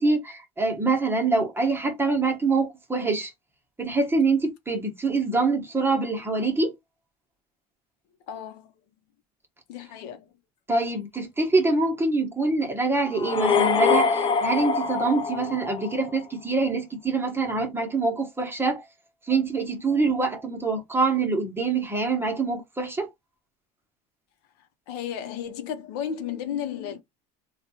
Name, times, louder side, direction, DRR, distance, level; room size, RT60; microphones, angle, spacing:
voice 1, 0.0-3.3 3.8-6.7 10.7-18.8 19.3-23.1, right 3 dB, 10° right, 1.1 m, -25 dB
voice 2, 8.3-8.7 9.7-10.3 24.6-27.0, left 9 dB, 80° left, 0.9 m, -34 dB
sound 1, 13.1-16.2, left 5 dB, 25° left, 0.5 m, -24 dB
3.3 x 2.4 x 2.8 m
supercardioid pair, 105°, 20 cm